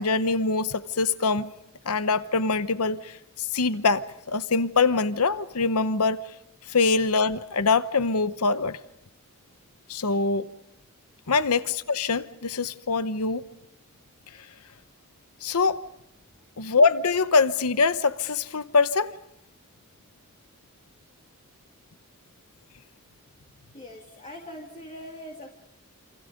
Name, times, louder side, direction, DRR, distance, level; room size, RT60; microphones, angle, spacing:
voice 1, 0.0-1.5 1.8-6.2 6.7-8.8 9.9-10.5 11.3-13.4 15.4-15.8 16.6-19.1, left 4 dB, 80° left, 13 dB, 0.9 m, -24 dB
voice 2, 23.7-25.5, left 1 dB, 30° left, 1 dB, 2.7 m, -42 dB
29.0 x 27.0 x 5.3 m, 0.78 s
head